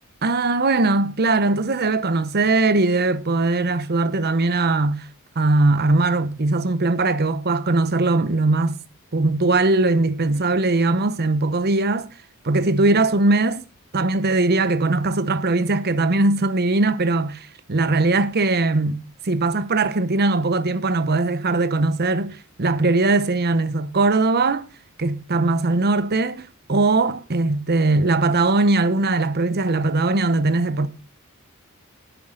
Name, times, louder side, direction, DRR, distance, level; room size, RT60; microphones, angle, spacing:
voice 1, 0.2-5.1 5.4-8.8 9.1-12.1 12.4-13.6 13.9-19.0 19.2-24.7 25.0-30.9, right 2 dB, 45° right, 0.9 m, -20 dB
11.5 x 9.4 x 3.9 m
head